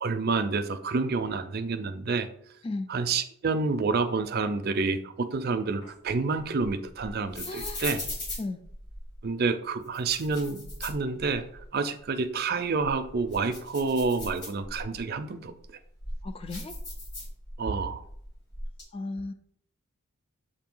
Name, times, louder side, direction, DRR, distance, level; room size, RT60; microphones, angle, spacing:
voice 1, 0.0-2.3 2.9-8.0 9.2-11.5 11.7-15.5 17.6-18.0, right 4 dB, 45° right, 8 dB, 0.5 m, -28 dB
sound 1, 5.8-9.2 9.8-11.7 12.0-12.1 12.6-15.0 15.6-17.7 18.0-18.8, left 1 dB, 45° left, 2.0 m, -39 dB
voice 2, 7.5-7.8 8.4-8.6 16.2-16.7 18.9-19.3, left 2 dB, 25° left, 9 dB, 0.3 m, -35 dB
6.7 x 2.7 x 5.4 m, 0.67 s
head